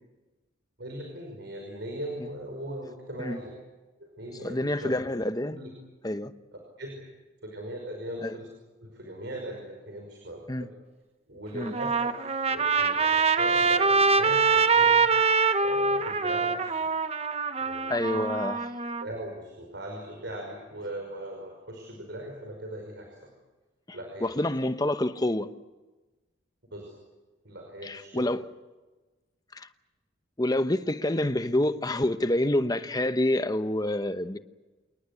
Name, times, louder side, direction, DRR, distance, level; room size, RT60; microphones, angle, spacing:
voice 1, 0.8-3.5 4.0-5.0 5.5-5.7 6.8-7.0 7.4-8.5 8.8-10.7 11.3-15.1 15.6-16.9 17.6-18.3 19.0-23.3 23.9-24.3 26.7-27.0 27.4-28.3, right 1 dB, 60° right, 5.4 m, -39 dB
voice 2, 4.4-5.6 6.0-6.3 8.2-8.3 10.5-10.7 11.5-11.7 17.9-18.6 24.2-25.5 27.8-28.5 29.5-29.7 30.4-34.4, left 1 dB, 20° left, 0.8 m, -27 dB
Trumpet, 11.6-19.0, right 4 dB, 30° right, 0.9 m, -24 dB
28.0 x 20.0 x 8.4 m
head